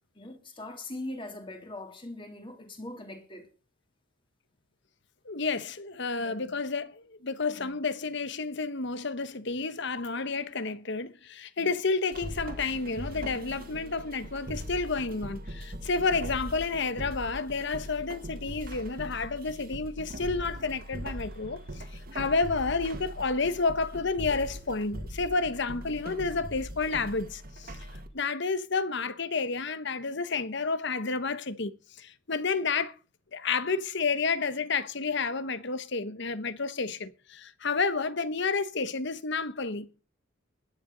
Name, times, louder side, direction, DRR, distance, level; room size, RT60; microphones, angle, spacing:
voice 1, 0.1-3.5 6.2-6.5 7.5-7.7 11.6-11.7, left 1 dB, 25° left, 3.2 m, -41 dB
voice 2, 5.2-21.9 22.1-27.8 28.1-32.9 33.3-39.9, left 4 dB, 60° left, 1.1 m, -30 dB
sound 1, 12.1-28.1, equal, 50° right, 2.0 m, -40 dB
20.5 x 9.9 x 4.0 m
head